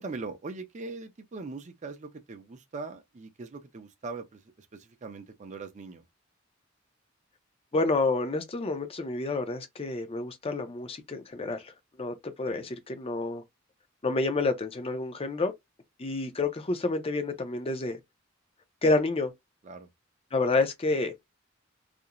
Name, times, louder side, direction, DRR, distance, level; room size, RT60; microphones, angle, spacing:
voice 1, 0.0-6.0 12.4-12.7 19.6-19.9, right 3 dB, 35° right, 0.5 m, -41 dB
voice 2, 7.7-13.4 14.0-15.5 16.0-18.0 18.8-19.3 20.3-21.1, left 3 dB, 30° left, 0.5 m, -29 dB
2.5 x 2.0 x 2.9 m
head